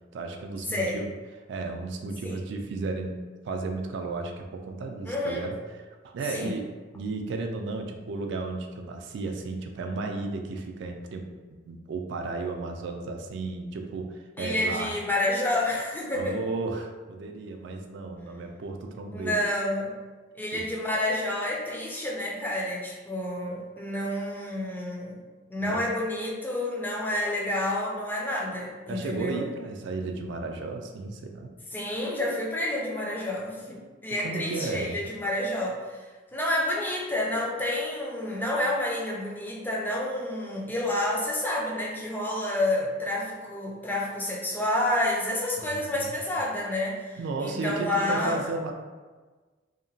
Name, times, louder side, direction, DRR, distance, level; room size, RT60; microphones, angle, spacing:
voice 1, 0.1-1.1 1.5-3.2 3.4-5.5 6.0-6.7 6.9-11.3 11.7-15.0 16.1-19.4 20.5-20.6 25.6-25.8 28.9-31.5 34.2-35.0 45.7-46.0 47.2-48.7, right 3 dB, 65° right, 3 dB, 0.3 m, -34 dB
voice 2, 0.7-1.1 2.2-2.4 5.0-5.5 6.3-6.6 14.4-16.4 19.1-19.9 20.3-25.2 25.5-29.5 31.7-48.5, left 1 dB, 10° left, -3 dB, 0.4 m, -29 dB
2.8 x 2.1 x 2.6 m, 1.3 s
head